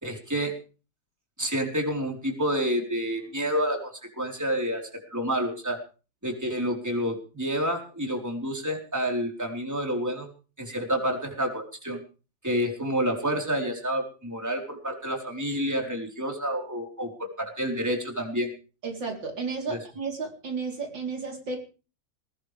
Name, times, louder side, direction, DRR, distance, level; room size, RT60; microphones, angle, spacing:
voice 1, 0.0-0.5 1.4-5.8 6.2-10.3 10.6-12.0 12.4-18.5 19.7-19.8, equal, 10° right, 2 dB, 4.4 m, -29 dB
voice 2, 18.8-21.6, right 4 dB, 80° right, 2 dB, 4.7 m, -33 dB
20.5 x 19.0 x 3.5 m, 0.36 s
omnidirectional pair, 2.0 m